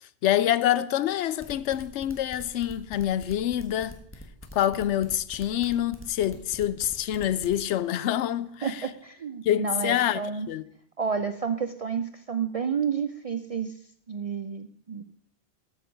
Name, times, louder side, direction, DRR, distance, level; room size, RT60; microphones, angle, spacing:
voice 1, 0.0-4.0 4.5-8.8 9.4-10.2 10.5-10.6, left 11 dB, 80° left, 0.9 m, -26 dB
sound 1, 1.3-7.6, equal, 10° left, 1.4 m, -44 dB
voice 2, 8.6-10.5 11.0-13.7 14.1-15.2, right 6 dB, 55° right, 0.4 m, -30 dB
13.0 x 6.7 x 5.2 m
omnidirectional pair, 1.2 m